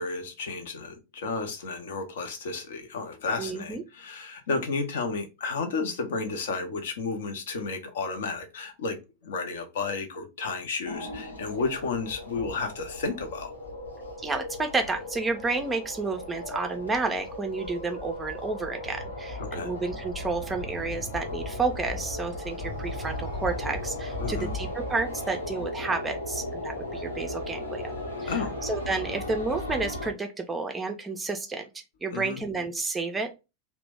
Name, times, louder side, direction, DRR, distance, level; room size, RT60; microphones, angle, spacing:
voice 1, 0.0-9.0 9.2-13.5 19.4-19.7 24.2-24.5 28.3-28.6 32.1-32.4, left 4 dB, 60° left, 0.7 m, -32 dB
voice 2, 3.4-3.8 14.2-27.9 28.2-31.7 32.0-33.3, right 3 dB, 15° right, 0.5 m, -31 dB
sound 1, 10.8-30.1, left 1 dB, 80° left, 1.0 m, -36 dB
2.9 x 2.1 x 3.4 m
figure-of-eight pair, 90°, 0 cm